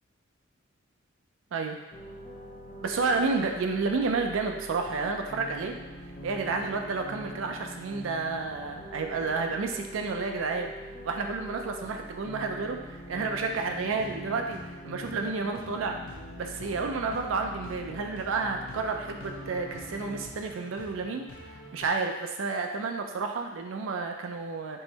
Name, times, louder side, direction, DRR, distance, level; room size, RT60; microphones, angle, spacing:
sound 1, 1.9-20.3, equal, 35° left, 0.4 m, -44 dB
voice 1, 2.8-5.7 6.2-10.7 11.0-16.0 16.4-24.8, right 4 dB, 75° right, 3 dB, 0.4 m, -31 dB
sound 2, 13.6-21.9, left 3 dB, 80° left, 0.7 m, -48 dB
3.7 x 2.9 x 4.0 m, 1.1 s
head